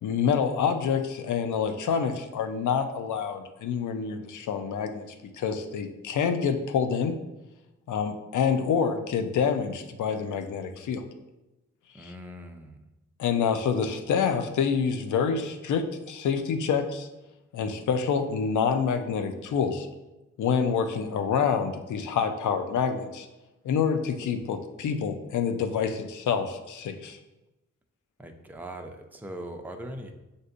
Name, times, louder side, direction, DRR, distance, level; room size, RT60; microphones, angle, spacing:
voice 1, 0.0-7.2 7.9-11.0 12.0-12.1 13.2-17.1 17.5-19.9 20.4-23.3 23.6-27.2, left 6 dB, 85° left, 7 dB, 0.5 m, -27 dB
voice 2, 11.9-12.8 28.2-30.1, right 1 dB, 5° right, 4 dB, 0.4 m, -40 dB
6.5 x 2.6 x 2.5 m, 0.99 s
cardioid pair, 65°, 29 cm